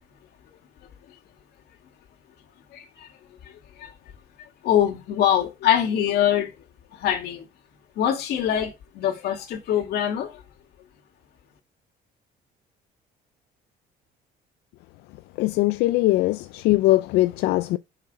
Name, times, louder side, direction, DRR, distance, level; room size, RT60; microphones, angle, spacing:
voice 1, 2.7-3.1 3.4-3.9 4.6-6.5 6.9-7.5 8.0-10.4, left 10 dB, 70° left, 2.4 m, -24 dB
voice 2, 15.4-17.8, left 17 dB, 90° left, 0.5 m, -21 dB
6.4 x 5.9 x 5.0 m
cardioid pair, 110°, 17 cm